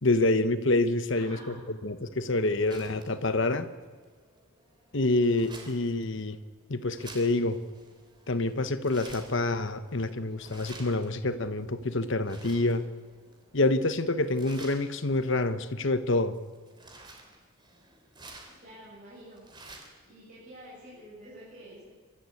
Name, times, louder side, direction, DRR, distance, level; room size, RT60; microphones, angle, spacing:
voice 1, 0.0-1.6 1.8-3.7 4.9-6.4 6.7-7.6 8.3-12.9 13.5-16.3, left 2 dB, 60° left, 11 dB, 1.2 m, -27 dB
voice 2, 1.1-1.5 18.6-19.4 20.1-21.9, right 1 dB, 40° right, -9 dB, 7.3 m, -48 dB
sound 1, 2.0-20.1, right 2 dB, 20° right, 3.1 m, -52 dB
24.5 x 13.5 x 8.5 m, 1.5 s
head